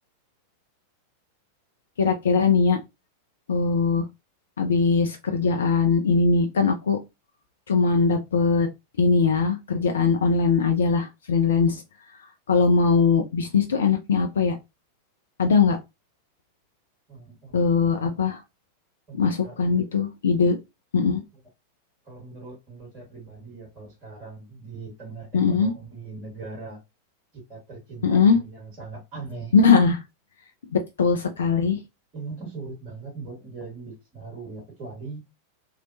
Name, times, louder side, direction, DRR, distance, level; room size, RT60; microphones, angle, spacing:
voice 1, 2.0-2.8 3.5-4.1 4.6-7.0 7.7-8.7 9.0-11.8 12.5-14.6 15.4-15.8 17.5-18.4 19.1-20.6 20.9-21.2 25.3-25.7 28.0-28.4 29.5-30.0 30.7-31.8, left 5 dB, 65° left, 0.3 m, -21 dB
voice 2, 17.1-18.2 19.1-19.8 22.0-26.8 27.5-29.5 32.1-35.2, right 4 dB, 35° right, 1.4 m, -40 dB
2.8 x 2.0 x 2.6 m
figure-of-eight pair, 90°, 0 cm